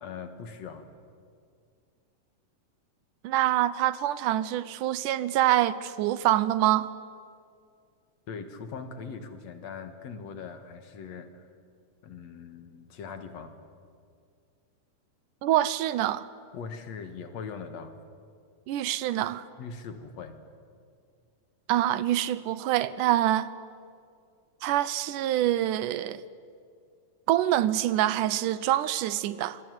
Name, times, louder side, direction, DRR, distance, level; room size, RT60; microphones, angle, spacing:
voice 1, 0.0-0.9 8.3-11.5 12.0-13.5 16.5-18.0 19.6-20.4, left 5 dB, 60° left, 2.7 m, -41 dB
voice 2, 3.2-6.9 15.4-16.3 18.7-19.5 21.7-23.5 24.6-26.2 27.3-29.6, right 13 dB, 80° right, 2.4 m, -25 dB
27.0 x 22.5 x 9.5 m
omnidirectional pair, 3.6 m